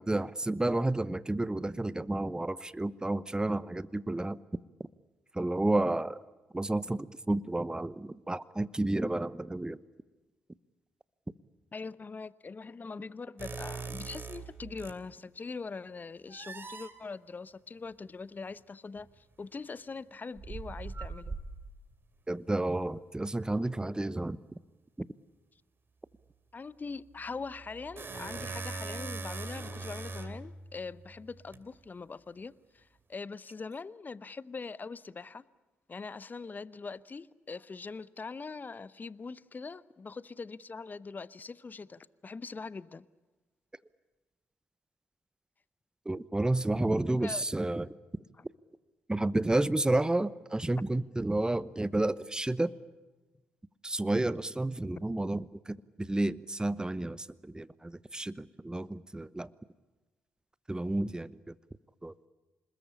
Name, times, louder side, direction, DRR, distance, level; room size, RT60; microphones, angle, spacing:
voice 1, 0.0-4.4 5.3-6.2 6.5-9.8 22.3-24.4 25.0-25.1 46.0-47.9 49.1-52.7 53.8-59.5 60.7-61.5 62.0-62.1, right 2 dB, 15° right, 0.9 m, -31 dB
voice 2, 11.7-21.4 26.5-35.4 35.9-43.0 47.1-47.4 48.4-48.5, left 4 dB, 30° left, 0.8 m, -42 dB
sound 1, 13.4-15.0 16.3-16.9 19.0-19.1 20.4-21.9 27.4-31.6, right 3 dB, 40° right, 3.1 m, -41 dB
26.0 x 21.0 x 8.7 m
figure-of-eight pair, 45°, 6 cm